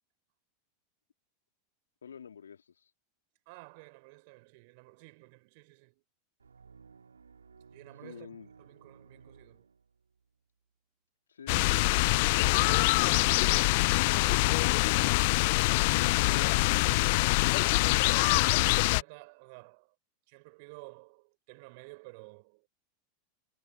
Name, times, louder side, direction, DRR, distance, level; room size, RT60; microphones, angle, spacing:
voice 1, 2.0-2.9 8.0-8.5, left 7 dB, 80° left, 2.5 m, -51 dB
voice 2, 3.5-6.0 7.7-9.7 18.7-19.9 20.3-22.7, right 29 dB, 55° right, 5.6 m, -52 dB
sound 1, 6.4-10.2, right 5 dB, 80° right, 3.3 m, -57 dB
sound 2, 11.5-19.0, left 25 dB, 55° left, 0.4 m, -24 dB
figure-of-eight pair, 85°, 0 cm